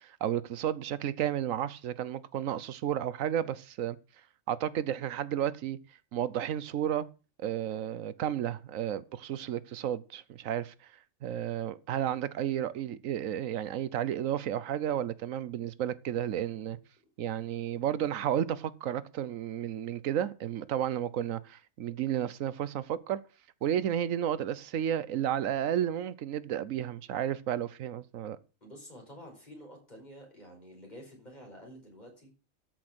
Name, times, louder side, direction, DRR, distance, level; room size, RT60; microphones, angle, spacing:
voice 1, 0.0-4.0 4.5-5.8 6.1-7.1 7.4-10.7 11.2-16.8 17.2-23.2 23.6-28.4, right 10 dB, 85° right, 1.1 m, -32 dB
voice 2, 28.6-32.4, equal, 35° left, 5.5 m, -49 dB
13.5 x 6.3 x 6.0 m
omnidirectional pair, 1.3 m